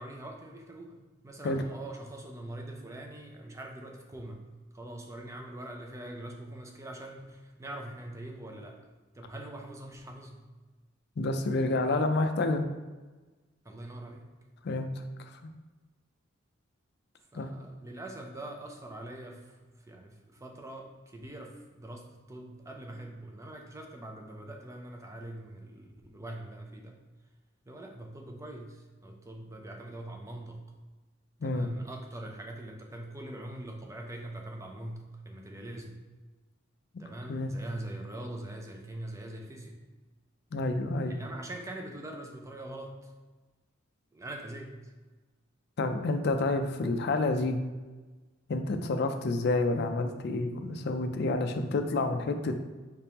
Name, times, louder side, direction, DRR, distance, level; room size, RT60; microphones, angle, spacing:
voice 1, 0.0-4.5 4.7-8.8 9.1-10.5 13.6-14.2 17.3-27.0 27.6-30.6 31.4-36.0 37.0-39.8 41.1-43.1 44.1-44.9, right 1 dB, 15° right, 2 dB, 0.5 m, -43 dB
voice 2, 11.2-12.6 14.6-14.9 15.3-15.4 17.3-17.5 31.4-31.7 37.3-37.5 40.5-41.1 45.8-47.6 48.5-52.5, left 2 dB, 55° left, 6 dB, 0.4 m, -29 dB
5.0 x 3.5 x 2.9 m, 1.3 s
head